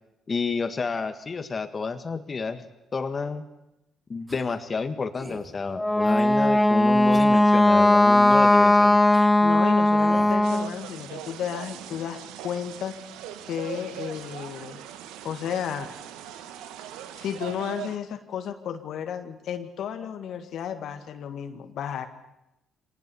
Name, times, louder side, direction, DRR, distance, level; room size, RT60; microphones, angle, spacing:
voice 1, 0.3-2.6 2.9-3.4 4.1-9.0, left 4 dB, 40° left, 9 dB, 1.7 m, -30 dB
sound 1, 4.3-4.6 5.1-5.5 6.1-6.6 7.1-7.4 8.2-8.6 9.1-9.3 9.9-10.4, right 1 dB, 20° right, 3.4 m, -43 dB
Wind instrument woodwind instrument, 5.7-10.7, left 1 dB, 10° left, 1.0 m, -18 dB
voice 2, 9.4-12.9 13.5-14.8 15.2-15.9 17.1-22.1, left 8 dB, 65° left, 7 dB, 1.6 m, -33 dB
sound 2, 10.4-18.0, right 10 dB, 80° right, 1.2 m, -40 dB
25.0 x 18.5 x 7.0 m, 0.91 s
hypercardioid pair, 50°, 0 cm